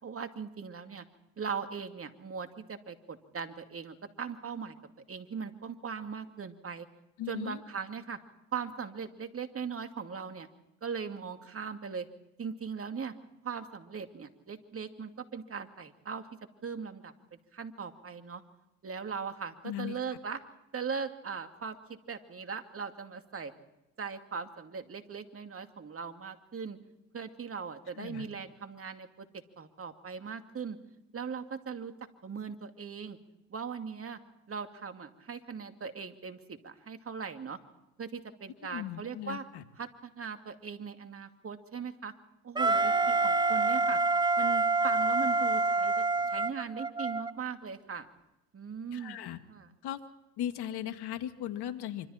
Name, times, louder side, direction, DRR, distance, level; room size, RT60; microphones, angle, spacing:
voice 1, 0.0-1.0 1.4-4.7 5.1-6.9 7.3-8.2 8.5-10.5 10.8-12.1 12.4-13.1 13.4-16.2 16.6-18.4 18.8-20.4 20.7-23.5 24.0-26.8 27.1-29.3 29.6-30.8 31.1-31.9 32.2-33.2 33.5-34.2 34.5-37.6 38.0-39.4 39.8-42.1 42.4-44.0 44.4-48.1 48.5-49.2 49.5-49.7, right 6 dB, 30° right, 7 dB, 2.6 m, -39 dB
voice 2, 7.2-7.6 19.6-20.0 28.0-28.3 38.7-39.6 48.9-49.4 49.8-50.0 50.4-52.1, left 11 dB, 60° left, 9 dB, 2.2 m, -37 dB
Wind instrument woodwind instrument, 42.5-47.3, right 3 dB, 10° right, 0.9 m, -27 dB
25.5 x 25.5 x 4.4 m, 0.93 s
hypercardioid pair, 75°, 43 cm